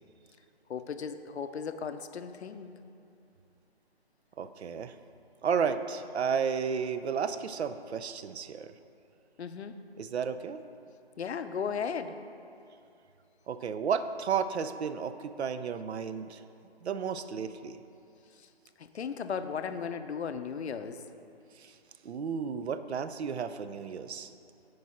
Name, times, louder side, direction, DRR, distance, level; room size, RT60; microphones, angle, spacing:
voice 1, 0.7-2.7 9.4-9.8 11.2-12.2 18.3-18.5 18.8-21.1, left 6 dB, 90° left, 10 dB, 0.6 m, -36 dB
voice 2, 4.4-4.9 5.4-8.7 10.0-10.6 13.5-16.4 16.8-17.8 21.6-21.7 22.0-24.3, right 6 dB, 85° right, 11 dB, 0.5 m, -32 dB
9.4 x 4.7 x 4.2 m, 2.6 s
hypercardioid pair, 175°, 32 cm